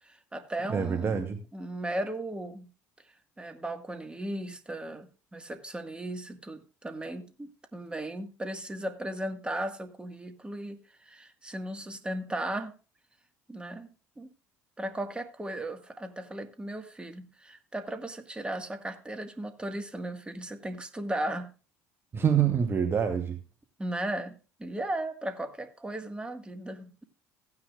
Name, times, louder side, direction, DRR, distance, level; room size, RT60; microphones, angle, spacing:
voice 1, 0.0-1.2 1.5-2.7 3.4-12.7 13.5-13.9 14.2-14.3 14.8-21.5 23.8-27.0, right 1 dB, 15° right, 1.8 m, -36 dB
voice 2, 0.7-1.4 22.1-23.4, right 7 dB, 35° right, 1.2 m, -26 dB
15.5 x 9.7 x 2.5 m
hypercardioid pair, 65°, 7 cm